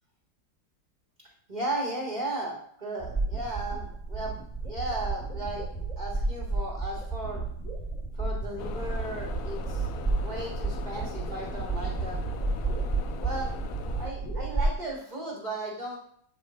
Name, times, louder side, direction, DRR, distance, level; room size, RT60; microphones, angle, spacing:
voice 1, 1.5-5.7 6.0-7.4 8.1-12.2 13.2-13.5 14.0-16.0, right 1 dB, 25° right, -5 dB, 1.3 m, -35 dB
sound 1, 3.0-14.7, right 3 dB, 5° left, 1.8 m, -31 dB
sound 2, 8.6-14.1, left 7 dB, 75° left, 0.8 m, -41 dB
7.7 x 3.0 x 4.8 m, 0.64 s
omnidirectional pair, 2.0 m